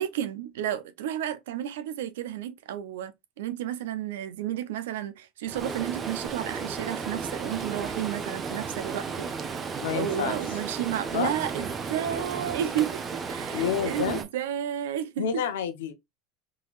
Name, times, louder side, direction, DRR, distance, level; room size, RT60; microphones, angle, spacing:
voice 1, 0.0-9.6 9.9-15.4, right 10 dB, 80° right, 0.6 m, -32 dB
Stream, 5.5-14.2, right 5 dB, 30° right, 0.8 m, -34 dB
voice 2, 9.8-10.4 11.1-11.3 13.5-14.2 15.2-15.9, left 8 dB, 85° left, 0.7 m, -29 dB
3.8 x 3.1 x 2.4 m
hypercardioid pair, 95°, 0 cm